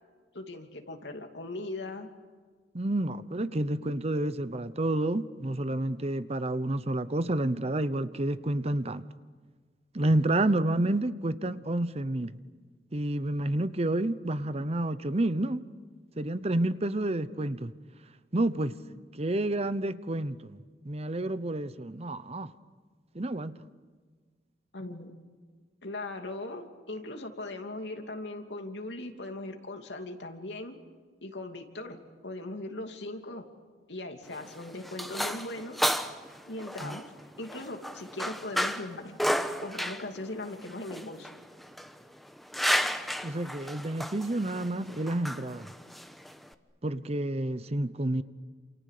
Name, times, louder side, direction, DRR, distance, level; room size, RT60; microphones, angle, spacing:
voice 1, 0.3-2.1 24.7-25.1 25.8-30.8 31.2-33.5 33.9-35.8 36.5-37.1 37.4-39.2 39.6-41.3, left 2 dB, 80° left, 2.9 m, -39 dB
voice 2, 2.7-9.1 9.9-12.4 12.9-15.6 16.2-17.7 18.3-18.7 19.1-20.6 20.8-22.5 23.1-23.5 36.8-37.0 43.2-45.7 46.8-48.2, right 1 dB, 35° right, 0.9 m, -29 dB
sound 1, 34.2-46.5, equal, ahead, 1.1 m, -33 dB
29.0 x 28.0 x 6.7 m
head